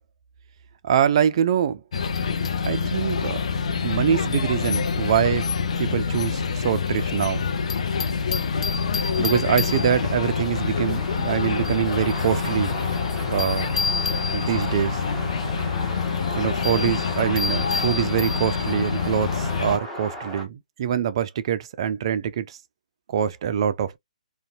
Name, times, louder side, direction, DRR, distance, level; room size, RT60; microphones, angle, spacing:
voice 1, 0.8-1.8 2.6-3.4 3.8-5.5 5.8-7.4 9.2-12.8 13.3-13.7 14.3-15.0 16.4-22.6 23.1-24.0, right 9 dB, 40° right, 0.3 m, -24 dB
sound 1, 1.9-19.8, left 5 dB, 55° left, 0.4 m, -26 dB
sound 2, 5.6-20.4, equal, 10° left, 0.9 m, -37 dB
2.6 x 2.2 x 2.4 m
figure-of-eight pair, 135°, 4 cm